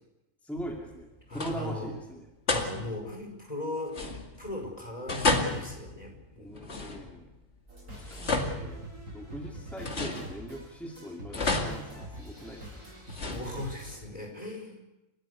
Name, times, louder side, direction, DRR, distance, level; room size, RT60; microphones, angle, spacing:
voice 1, 0.4-2.3 6.4-7.3 7.9-8.8 9.1-12.8, equal, ahead, 0 dB, 2.5 m, -41 dB
sound 1, 0.6-1.0 1.3-1.8 2.5-3.1 3.9-4.6 5.1-7.3 7.9-9.3 9.8-10.8 11.3-12.6 13.1-14.0, left 2 dB, 55° left, 2.6 m, -32 dB
voice 2, 1.3-1.9 2.5-6.5 13.0-14.8, left 2 dB, 30° left, 2 dB, 5.3 m, -38 dB
sound 2, 7.7-14.0, right 1 dB, 85° right, 7.8 m, -46 dB
30.0 x 14.0 x 8.2 m, 1.0 s
omnidirectional pair, 1.3 m